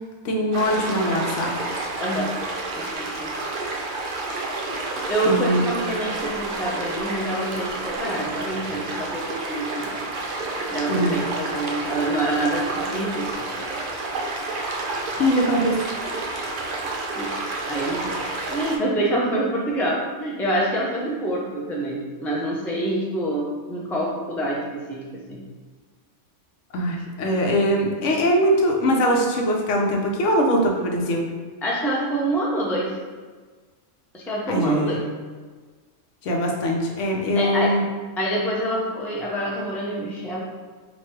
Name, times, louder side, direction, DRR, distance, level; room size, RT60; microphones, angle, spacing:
voice 1, 0.2-1.6 5.3-5.7 10.9-11.2 15.2-15.8 26.7-31.3 34.5-35.0 36.2-37.8, equal, 75° left, 0 dB, 1.0 m, -22 dB
sound 1, 0.5-18.8, right 2 dB, 55° right, 0.5 m, -30 dB
voice 2, 2.0-2.3 2.8-3.3 5.1-10.1 10.7-13.3 17.2-17.3 17.7-25.4 31.6-32.9 34.1-35.0 37.3-37.7 38.2-40.4, right 1 dB, 5° left, -4 dB, 0.3 m, -26 dB
3.0 x 2.5 x 4.4 m, 1.4 s
omnidirectional pair, 1.3 m